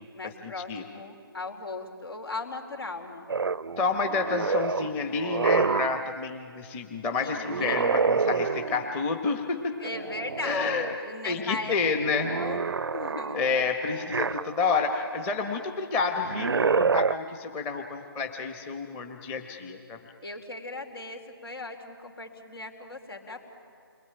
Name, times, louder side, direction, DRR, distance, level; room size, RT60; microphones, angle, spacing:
voice 1, 0.1-3.3 7.2-8.1 9.8-11.8 12.0-12.7 12.9-13.4 20.2-23.5, left 2 dB, 75° left, 4 dB, 4.3 m, -38 dB
sound 1, 3.3-6.1 7.4-9.0 9.9-11.0 11.4-14.9 16.1-17.1, right 5 dB, 80° right, 0.6 m, -28 dB
voice 2, 3.8-9.7 10.4-10.9 11.2-12.3 13.3-20.0, left 4 dB, 15° left, 4 dB, 1.1 m, -29 dB
28.5 x 22.0 x 9.0 m, 2.5 s
figure-of-eight pair, 155°, 13 cm